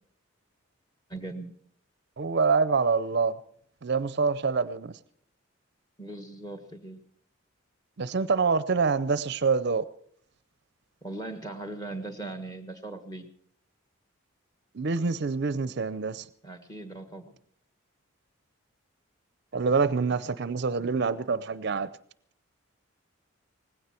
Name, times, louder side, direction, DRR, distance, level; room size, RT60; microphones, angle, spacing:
voice 1, 1.1-1.6 6.0-7.1 11.0-13.3 16.4-17.4, right 2 dB, 20° left, 1.6 m, -39 dB
voice 2, 2.2-3.4 3.8-4.9 8.0-9.8 14.7-16.3 19.5-21.9, right 4 dB, 55° right, 0.5 m, -26 dB
18.5 x 16.5 x 4.4 m
head